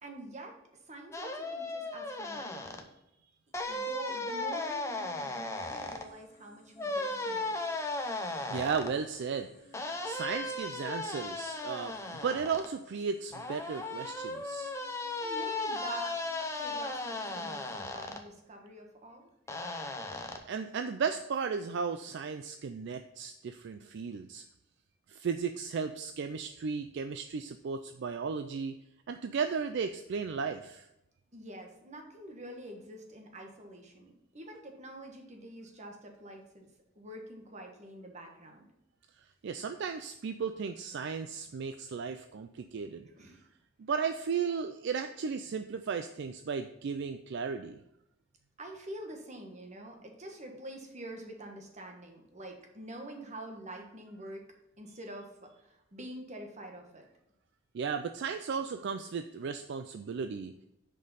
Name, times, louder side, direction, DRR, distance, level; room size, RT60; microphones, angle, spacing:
voice 1, 0.0-0.5 0.9-2.9 3.7-7.6 15.2-16.2 16.5-19.2 31.3-36.7 36.9-38.7 43.0-43.4 48.6-54.4 54.8-55.3 55.6-57.1, right 1 dB, 35° right, 2 dB, 1.4 m, -46 dB
sound 1, 1.1-2.8 3.5-6.0 6.8-8.9 9.7-12.7 13.3-18.2 19.5-20.4, left 2 dB, 15° left, 0.7 m, -36 dB
sound 2, 5.5-17.8, left 1 dB, 40° left, 2.0 m, -62 dB
voice 2, 8.5-9.5 10.0-11.9 12.2-14.7 20.5-24.4 25.1-28.7 29.1-30.9 39.4-43.1 43.8-47.8 57.7-60.5, right 6 dB, 60° right, 8 dB, 0.4 m, -35 dB
6.4 x 5.3 x 5.5 m, 0.85 s
head